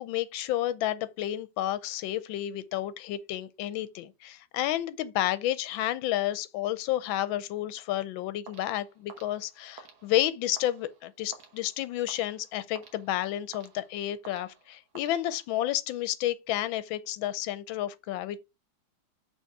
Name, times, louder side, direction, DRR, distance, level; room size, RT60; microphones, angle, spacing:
voice 1, 0.0-18.4, left 13 dB, 85° left, 1.4 m, -31 dB
sound 1, 8.5-15.7, right 5 dB, 80° right, 2.0 m, -53 dB
6.4 x 4.3 x 4.6 m
omnidirectional pair, 2.1 m